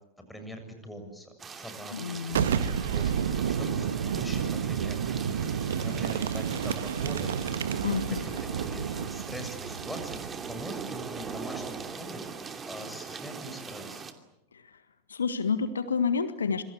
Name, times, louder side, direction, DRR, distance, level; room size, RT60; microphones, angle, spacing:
voice 1, 0.3-5.0 5.7-14.0, equal, 5° left, 6 dB, 7.1 m, -43 dB
sound 1, 1.4-14.1, right 5 dB, 20° right, 2.7 m, -41 dB
voice 2, 1.9-2.5 7.8-8.2 14.5-14.8 15.1-16.6, left 5 dB, 70° left, 12 dB, 1.6 m, -29 dB
Boom, 2.3-11.9, right 8 dB, 60° right, 1.6 m, -31 dB
27.0 x 25.0 x 8.3 m, 0.85 s
figure-of-eight pair, 90°, 0 cm